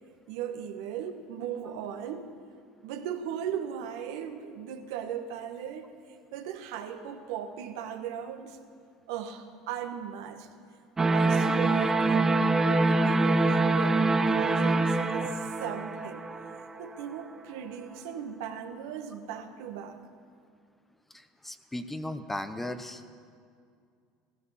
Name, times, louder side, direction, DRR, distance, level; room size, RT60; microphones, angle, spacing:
voice 1, 0.3-2.3 2.8-5.9 6.3-8.6 9.1-10.5 11.0-16.3 16.8-20.0, right 8 dB, 75° right, 5 dB, 1.4 m, -38 dB
sound 1, 11.0-17.0, right 2 dB, 20° right, 0.9 m, -25 dB
voice 2, 21.1-23.0, left 1 dB, 10° left, 10 dB, 0.9 m, -36 dB
15.5 x 15.5 x 5.9 m, 2.3 s
hypercardioid pair, 90°, 2 cm